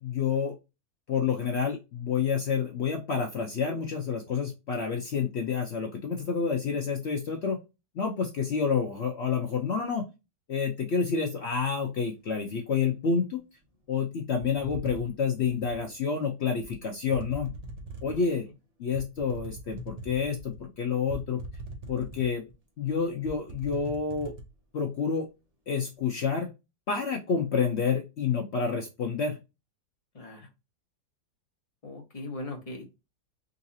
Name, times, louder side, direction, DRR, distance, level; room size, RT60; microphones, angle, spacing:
voice 1, 0.0-0.5 1.1-7.6 8.0-10.1 10.5-13.4 13.9-17.5 18.0-18.4 18.8-21.4 21.9-22.4 22.8-24.3 24.7-25.3 25.7-26.5 26.9-29.4, left 6 dB, 60° left, 3 dB, 0.8 m, -29 dB
sound 1, 14.4-15.8 16.6-16.8 17.1-18.3 18.9-20.6 21.1-22.5 22.9-23.0 23.3-24.5, right 1 dB, 40° right, 0.5 m, -41 dB
voice 2, 30.1-30.5 31.8-32.9, left 2 dB, 25° left, 2 dB, 1.0 m, -39 dB
3.9 x 2.6 x 2.6 m, 0.25 s
omnidirectional pair, 1.7 m